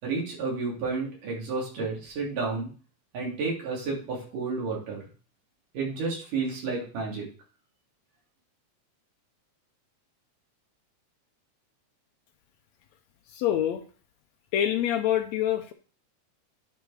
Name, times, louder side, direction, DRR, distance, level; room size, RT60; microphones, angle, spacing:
voice 1, 0.0-2.7 3.1-5.0 5.7-7.3, right 4 dB, 85° right, -2 dB, 4.6 m, -31 dB
voice 2, 13.3-13.8 14.5-15.7, left 11 dB, 75° left, 7 dB, 1.7 m, -26 dB
9.4 x 4.8 x 4.9 m, 0.38 s
omnidirectional pair, 3.6 m